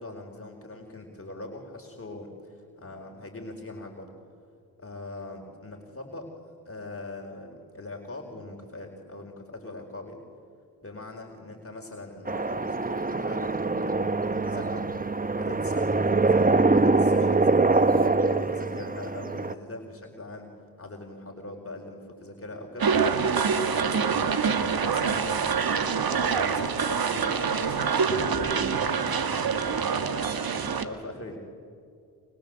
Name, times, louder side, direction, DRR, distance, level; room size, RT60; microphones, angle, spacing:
voice 1, 0.0-4.1 4.8-6.3 6.7-10.2 10.8-23.5 23.9-27.8 28.1-30.4 30.8-31.4, left 2 dB, 30° left, 1 dB, 4.6 m, -41 dB
sound 1, 12.2-19.5, right 3 dB, 20° right, 1.2 m, -24 dB
sound 2, 22.8-30.8, right 6 dB, 60° right, 2.0 m, -25 dB
29.5 x 25.5 x 7.8 m, 2.3 s
supercardioid pair, 50°, 42 cm